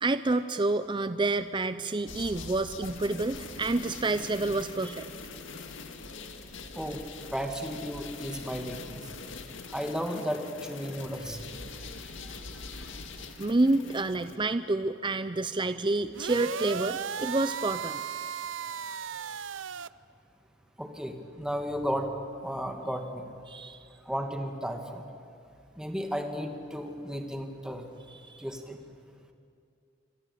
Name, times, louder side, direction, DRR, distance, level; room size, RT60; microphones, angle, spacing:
voice 1, 0.0-5.1 13.4-18.0 23.5-23.8 28.1-28.4, right 2 dB, 25° right, 11 dB, 0.6 m, -28 dB
sound 1, 2.1-14.4, left 4 dB, 75° left, 2.1 m, -43 dB
voice 2, 7.3-9.1 9.7-11.5 11.9-13.0 20.8-22.1 22.4-23.2 24.1-25.0 25.8-27.9 28.4-28.8, equal, 5° right, 4 dB, 2.3 m, -34 dB
sound 2, 16.1-19.9, right 7 dB, 70° right, 0.6 m, -35 dB
27.5 x 24.0 x 8.5 m, 2.5 s
head